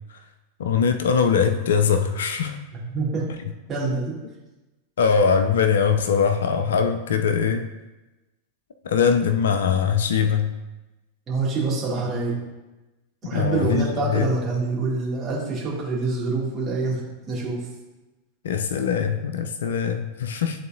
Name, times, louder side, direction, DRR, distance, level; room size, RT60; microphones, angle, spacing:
voice 1, 0.6-2.6 5.0-7.7 8.8-10.5 13.3-14.3 18.4-20.7, left 6 dB, 60° left, 8 dB, 0.4 m, -22 dB
voice 2, 2.7-3.3 3.7-4.1 11.3-12.3 13.2-17.0 17.3-17.6, right 3 dB, 25° right, -6 dB, 2.1 m, -26 dB
11.5 x 3.8 x 2.5 m, 1.1 s
figure-of-eight pair, 90°, 0 cm